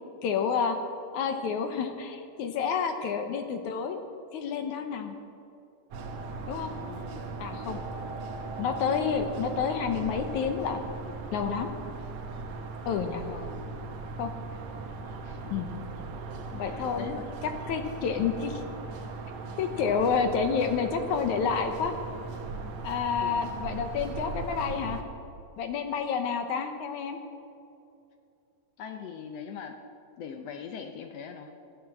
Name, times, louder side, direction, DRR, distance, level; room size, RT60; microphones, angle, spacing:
voice 1, 0.2-0.8 1.1-4.0 4.3-5.1 6.5-6.7 7.4-7.8 8.6-10.8 11.3-11.7 12.9-13.2 14.2-14.3 15.5-15.7 16.5-17.1 17.7-18.6 19.6-21.9 22.8-25.0 25.6-27.2, left 6 dB, 70° left, 6 dB, 2.1 m, -29 dB
sound 1, 5.9-25.0, right 3 dB, 65° right, 2.0 m, -38 dB
voice 2, 6.6-7.2 13.3-13.9 15.2-15.6 16.6-17.3 23.2-23.5 28.8-29.8 30.2-31.5, left 7 dB, 90° left, 5 dB, 1.4 m, -41 dB
14.0 x 11.0 x 7.6 m, 2.7 s
omnidirectional pair, 3.9 m